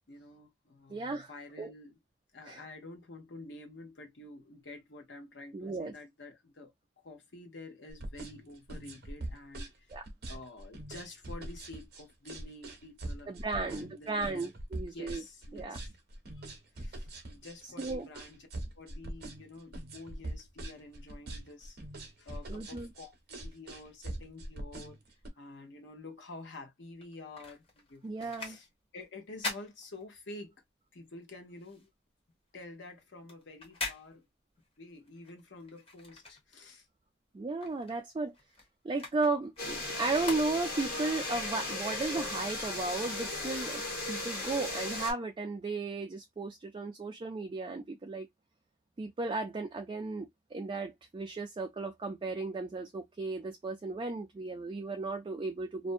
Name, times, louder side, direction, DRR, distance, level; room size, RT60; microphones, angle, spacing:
voice 1, 0.1-2.0 2.3-6.7 7.0-9.9 10.3-15.8 16.4-18.5 18.8-21.8 22.2-25.0 25.4-28.7 28.9-30.5 30.9-31.9 32.5-34.3 34.8-36.9, left 2 dB, 75° left, 0.8 m, -49 dB
voice 2, 0.9-1.3 1.6-1.7 2.5-2.6 5.5-5.9 9.9-10.0 13.3-15.2 15.5-15.8 17.8-18.1 22.5-22.9 28.0-28.6 37.3-38.3 38.8-43.8 44.1-48.3 49.0-55.9, right 3 dB, 30° right, 0.3 m, -35 dB
sound 1, 7.9-25.3, right 1 dB, 60° right, 0.7 m, -42 dB
sound 2, 26.9-30.6 31.0-36.9 37.2-41.0 41.6-41.7, left 3 dB, 30° left, 0.9 m, -44 dB
sound 3, 39.6-45.1, left 2 dB, 55° left, 1.3 m, -36 dB
2.5 x 2.1 x 2.5 m
head